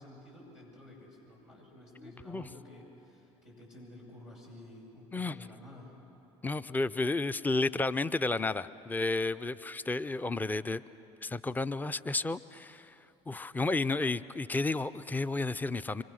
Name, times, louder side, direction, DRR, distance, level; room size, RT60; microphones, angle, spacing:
voice 1, 0.0-5.9, left 1 dB, 85° left, -6 dB, 7.9 m, -51 dB
voice 2, 2.0-2.5 5.1-5.4 6.4-10.8 11.2-12.9 13.3-16.0, left 3 dB, 10° left, 14 dB, 0.6 m, -32 dB
25.5 x 25.5 x 6.4 m, 3.0 s
hypercardioid pair, 65°, 15 cm